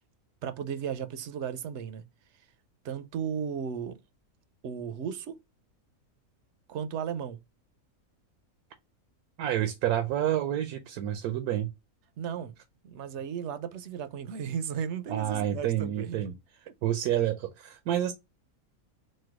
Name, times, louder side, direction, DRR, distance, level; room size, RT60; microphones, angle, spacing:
voice 1, 0.4-2.0 2.8-4.0 4.6-5.4 6.7-7.4 12.2-12.5 12.8-16.2 16.7-16.8, right 7 dB, 65° right, 0.8 m, -35 dB
voice 2, 9.4-11.7 15.1-16.3 16.8-18.1, right 11 dB, 85° right, 1.1 m, -29 dB
4.3 x 2.2 x 4.6 m
omnidirectional pair, 1.5 m